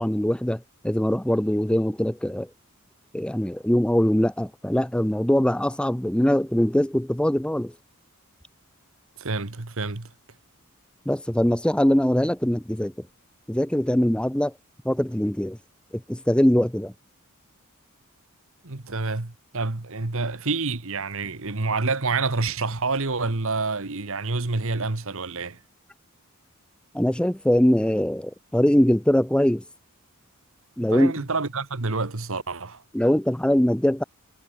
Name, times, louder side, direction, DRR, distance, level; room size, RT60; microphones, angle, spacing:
voice 1, 0.0-2.5 3.1-7.7 11.1-12.9 13.5-14.5 14.8-15.6 15.9-16.9 26.9-29.6 30.8-31.1 32.9-34.0, equal, 5° left, 0.5 m, -22 dB
voice 2, 9.2-10.1 18.6-25.6 30.9-32.8, right 3 dB, 65° right, 1.5 m, -28 dB
head